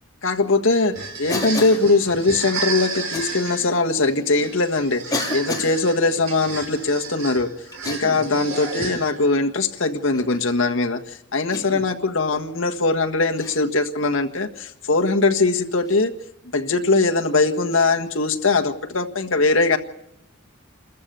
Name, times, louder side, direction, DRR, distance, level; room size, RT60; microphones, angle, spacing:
voice 1, 0.2-7.5 7.8-16.1 16.5-19.8, left 3 dB, 65° left, 4 dB, 1.6 m, -21 dB
sound 1, 0.7-9.4, right 4 dB, 75° right, 4.5 m, -33 dB
Cough, 1.3-1.9 3.1-3.3 4.2-4.3 5.1-5.8 7.7-8.3 8.8-9.0 10.1-10.5 11.5-11.9 13.3-13.6 15.8-16.0 17.7-17.9, left 2 dB, 20° left, 3.3 m, -30 dB
28.0 x 14.0 x 6.9 m, 0.80 s
head